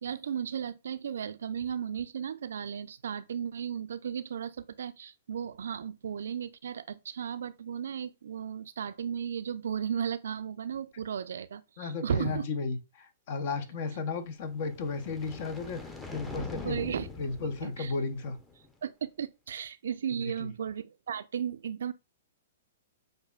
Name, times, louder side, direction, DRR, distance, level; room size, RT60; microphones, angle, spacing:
voice 1, 0.0-12.5 16.6-17.1 17.6-17.9 18.8-21.9, right 8 dB, 75° right, 0.4 m, -35 dB
voice 2, 11.8-16.9 17.2-18.4 20.2-20.5, left 4 dB, 55° left, 0.8 m, -34 dB
sound 1, 14.4-18.7, left 3 dB, 10° left, 0.7 m, -43 dB
6.5 x 2.6 x 2.3 m
hypercardioid pair, 125°, 0 cm